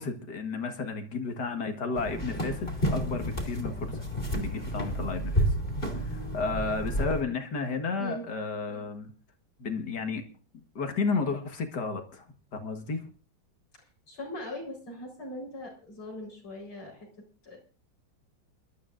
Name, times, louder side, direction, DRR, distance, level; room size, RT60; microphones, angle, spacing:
voice 1, 0.0-3.9 4.3-5.5 5.9-9.1 9.6-10.2 10.5-12.3 12.5-13.1, left 4 dB, 55° left, 2.1 m, -32 dB
sound 1, 2.0-7.2, equal, 25° left, 2.9 m, -30 dB
voice 2, 13.8-17.1 17.4-17.6, left 1 dB, 85° left, 5.5 m, -40 dB
29.0 x 12.5 x 2.6 m
omnidirectional pair, 2.3 m